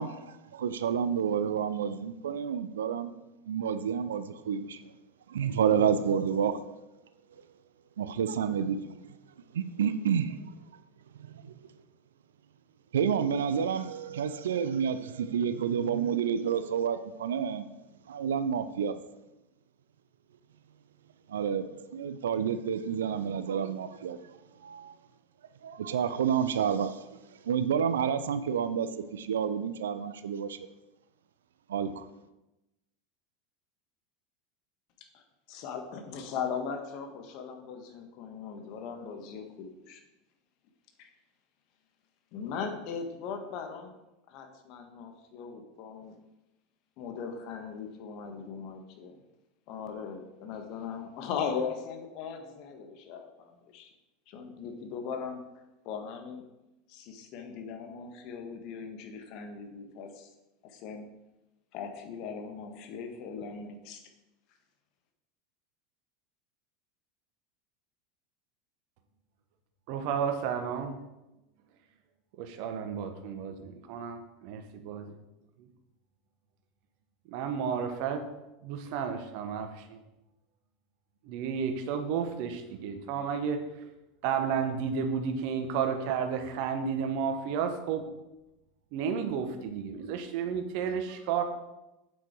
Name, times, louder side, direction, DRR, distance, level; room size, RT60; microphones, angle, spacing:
voice 1, 0.0-3.1 3.5-4.8 5.3-6.6 8.0-9.0 9.5-10.4 11.4-11.5 12.9-17.7 18.1-19.0 21.3-24.2 24.6-25.0 25.6-27.1 27.4-30.6 31.7-32.1, right 7 dB, 70° right, 12 dB, 0.6 m, -29 dB
voice 2, 35.5-40.0 41.0-41.1 42.3-43.9 44.3-46.2 47.0-49.2 49.7-53.9 54.3-55.4 55.8-56.5 56.9-60.3 60.6-61.1 61.7-64.0, left 6 dB, 50° left, 5 dB, 1.6 m, -39 dB
voice 3, 69.9-71.0 72.4-75.1 77.3-78.2 78.6-80.0 81.2-83.6 84.2-88.0 88.9-91.4, right 7 dB, 55° right, 7 dB, 1.3 m, -32 dB
8.4 x 8.0 x 4.8 m, 0.96 s
figure-of-eight pair, 80°, 0 cm